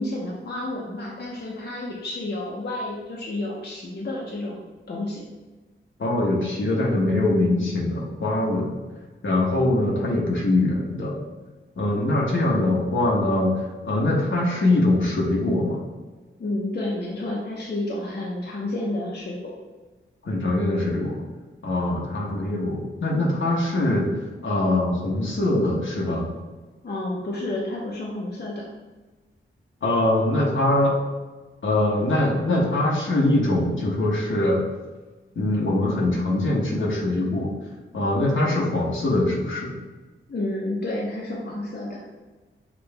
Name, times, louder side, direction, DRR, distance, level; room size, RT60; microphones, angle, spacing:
voice 1, 0.0-5.2 16.4-19.4 26.8-28.7 40.3-42.0, left 1 dB, 55° left, -4 dB, 0.9 m, -30 dB
voice 2, 6.0-8.8 9.2-11.2 11.8-15.8 20.2-21.2 21.6-24.1 24.4-26.3 29.8-31.0 31.6-34.6 35.3-37.5 37.9-39.7, left 1 dB, 70° left, -2 dB, 1.1 m, -22 dB
6.1 x 2.5 x 3.3 m, 1.2 s
cardioid pair, 65°, 21 cm